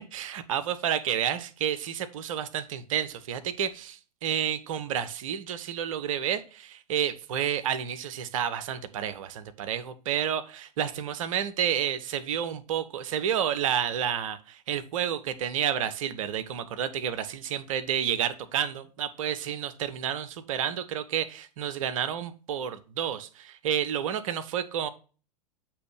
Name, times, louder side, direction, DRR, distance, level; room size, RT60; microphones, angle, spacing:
voice 1, 0.1-24.9, right 9 dB, 55° right, 12 dB, 0.7 m, -30 dB
7.9 x 3.0 x 4.8 m, 0.36 s
figure-of-eight pair, 95°, 21 cm